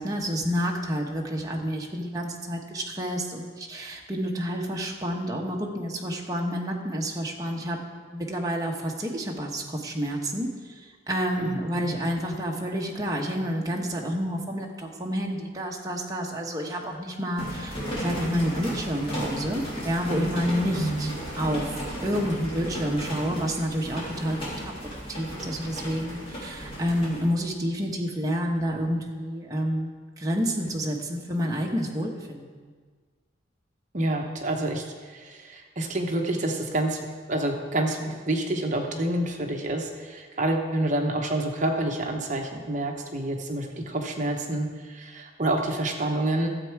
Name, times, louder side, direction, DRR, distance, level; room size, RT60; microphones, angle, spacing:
voice 1, 0.0-7.8 8.0-29.9 30.2-32.7, equal, 20° right, 0 dB, 1.1 m, -29 dB
voice 2, 11.4-11.9 20.7-21.2 33.9-37.0 37.3-46.5, right 1 dB, 40° right, 3 dB, 0.9 m, -28 dB
sound 1, 17.4-27.3, equal, 30° left, 3.0 m, -35 dB
13.0 x 7.6 x 4.6 m, 1.5 s
head